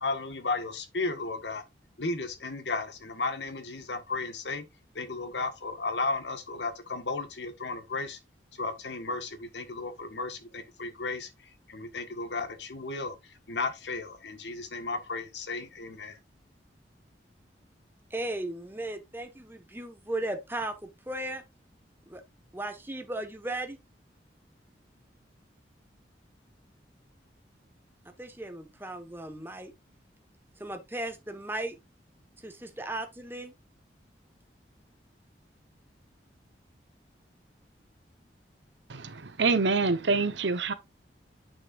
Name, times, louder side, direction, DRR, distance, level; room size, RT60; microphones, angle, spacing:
voice 1, 0.0-1.6 2.0-4.7 4.9-8.2 8.5-11.3 11.7-13.1 13.5-16.2, left 3 dB, 80° left, 1.6 m, -34 dB
voice 2, 18.1-20.7 21.1-21.4 22.1-22.2 22.5-23.8 28.2-29.7 30.6-31.8 32.4-33.5, right 1 dB, 10° right, 1.4 m, -36 dB
voice 3, 38.9-40.7, right 4 dB, 90° right, 1.0 m, -26 dB
9.0 x 6.4 x 2.5 m
head